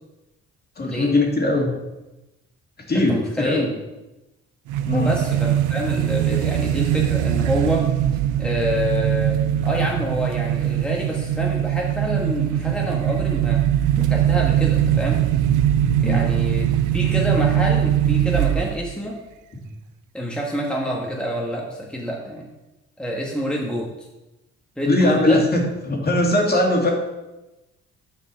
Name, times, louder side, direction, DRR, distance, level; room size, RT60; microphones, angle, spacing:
voice 1, 0.8-1.7 2.9-3.7 4.8-5.1 16.0-16.2 19.5-19.6 24.9-26.9, left 2 dB, 30° left, 0 dB, 2.0 m, -20 dB
voice 2, 3.1-3.6 4.9-7.9 8.4-13.6 14.0-15.2 16.0-16.6 16.9-19.2 20.1-22.5 23.0-24.1 24.8-25.4, equal, 5° left, -2 dB, 1.2 m, -27 dB
sound 1, 4.7-18.9, right 11 dB, 85° right, 0.5 m, -21 dB
7.0 x 5.3 x 5.5 m, 1.0 s
cardioid pair, 90°, 30 cm